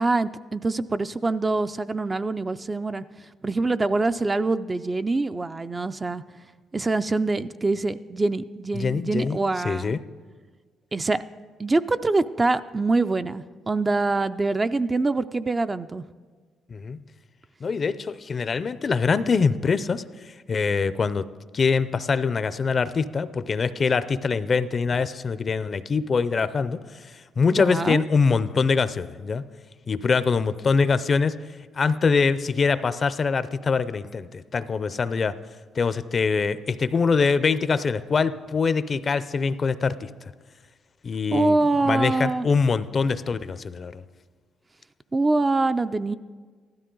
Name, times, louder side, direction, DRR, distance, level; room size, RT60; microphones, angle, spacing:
voice 1, 0.0-3.0 3.4-6.2 6.7-10.0 10.9-11.2 11.6-16.0 27.5-28.0 41.3-42.5 45.1-46.1, right 3 dB, 25° right, 11 dB, 0.4 m, -24 dB
voice 2, 8.7-9.4 9.6-10.0 16.7-17.0 17.6-20.0 20.5-21.2 21.5-26.8 27.4-29.4 29.9-31.4 31.7-35.3 35.8-40.3 41.0-41.6 41.9-44.0, left 5 dB, 40° left, 14 dB, 0.5 m, -23 dB
15.5 x 12.5 x 3.8 m, 1.5 s
cardioid pair, 90°, 0 cm